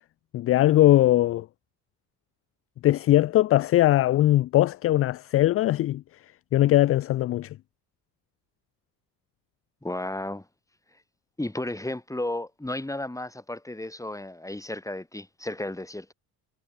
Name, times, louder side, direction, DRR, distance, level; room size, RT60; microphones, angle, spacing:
voice 1, 0.3-1.5 2.8-6.0 6.5-7.6, left 14 dB, 30° left, 0.4 m, -20 dB
voice 2, 9.8-10.5 11.4-16.1, left 1 dB, 5° left, 2.0 m, -33 dB
hypercardioid pair, 55°, 49 cm